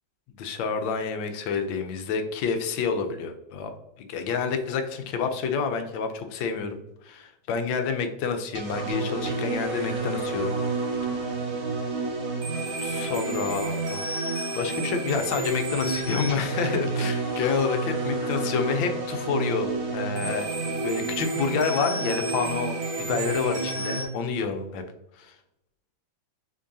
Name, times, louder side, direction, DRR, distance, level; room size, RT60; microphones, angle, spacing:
voice 1, 0.4-3.7 4.0-10.6 12.8-14.1 14.5-20.5 20.8-24.8 25.2-25.3, left 5 dB, 80° left, 7 dB, 1.3 m, -28 dB
sound 1, 8.5-24.0, right 3 dB, 45° right, 1.0 m, -29 dB
6.3 x 3.0 x 2.6 m, 0.88 s
omnidirectional pair, 2.1 m